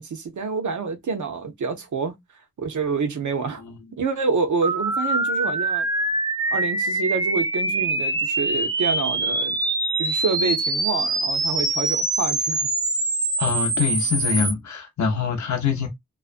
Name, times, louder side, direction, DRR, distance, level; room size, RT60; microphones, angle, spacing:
voice 1, 0.0-2.2 2.6-3.6 4.0-5.9 6.5-9.6 10.0-12.7, right 4 dB, 85° right, 0.6 m, -27 dB
sound 1, 4.6-14.5, right 2 dB, 15° right, 0.3 m, -24 dB
voice 2, 13.4-15.9, left 6 dB, 80° left, 0.6 m, -24 dB
2.4 x 2.1 x 2.4 m
wide cardioid pair, 70°, 29 cm